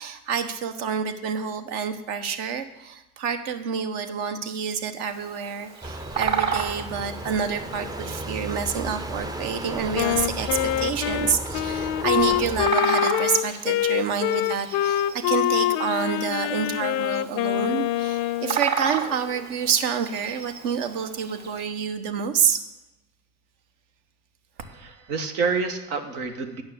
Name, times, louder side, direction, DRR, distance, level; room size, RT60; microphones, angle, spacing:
voice 1, 0.0-22.6, right 7 dB, 60° right, 8 dB, 1.2 m, -28 dB
Bird vocalization bird call bird song, 5.1-21.6, right 6 dB, 35° right, 2.4 m, -34 dB
sound 1, 5.8-12.7, right 1 dB, 10° right, 0.4 m, -34 dB
Wind instrument woodwind instrument, 9.9-18.6, left 13 dB, 50° left, 0.5 m, -25 dB
voice 2, 24.6-26.6, right 4 dB, 75° right, 4 dB, 1.4 m, -28 dB
9.4 x 6.1 x 6.7 m, 0.91 s
hypercardioid pair, 75°, 45 cm